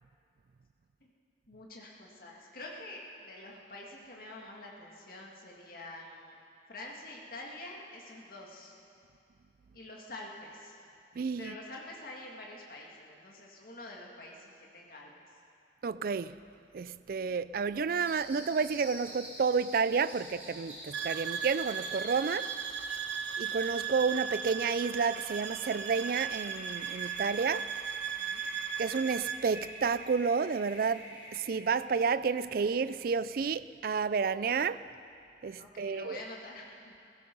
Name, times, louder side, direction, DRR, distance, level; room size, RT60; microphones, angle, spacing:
voice 1, 1.5-6.4 6.7-8.7 9.7-10.8 11.4-15.1 28.0-28.5 35.6-36.9, left 2 dB, 50° left, 2.1 m, -47 dB
voice 2, 11.2-11.5 15.8-16.4 16.7-22.5 23.4-27.7 28.8-34.9 35.4-36.2, right 5 dB, 50° right, 0.3 m, -30 dB
sound 1, 18.0-33.3, equal, 10° right, 4.0 m, -49 dB
sound 2, 20.9-29.4, right 7 dB, 85° right, 1.0 m, -37 dB
16.0 x 15.5 x 5.4 m
head